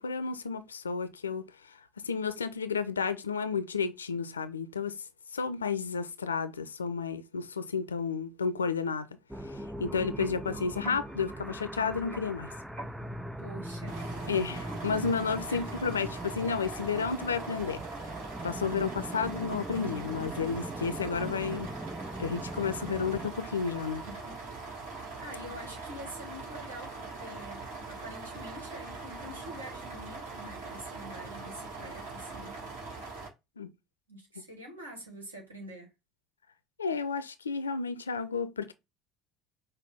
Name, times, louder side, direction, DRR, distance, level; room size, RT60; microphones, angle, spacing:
voice 1, 0.0-1.8 2.0-5.0 5.3-9.1 9.8-12.5 14.3-14.6 14.8-17.8 18.4-21.7 22.2-24.0 33.6-33.7 36.8-38.7, left 5 dB, 80° left, 0.4 m, -32 dB
sound 1, 9.3-23.3, right 1 dB, 5° right, 0.4 m, -40 dB
sound 2, 9.6-16.4, right 2 dB, 35° right, 2.1 m, -51 dB
voice 2, 13.4-14.6 15.5-15.6 24.1-24.6 25.2-32.6 34.1-35.9, equal, 80° right, 1.4 m, -46 dB
sound 3, 13.9-33.3, right 3 dB, 60° right, 1.6 m, -42 dB
5.3 x 2.2 x 3.3 m
figure-of-eight pair, 65°, 0 cm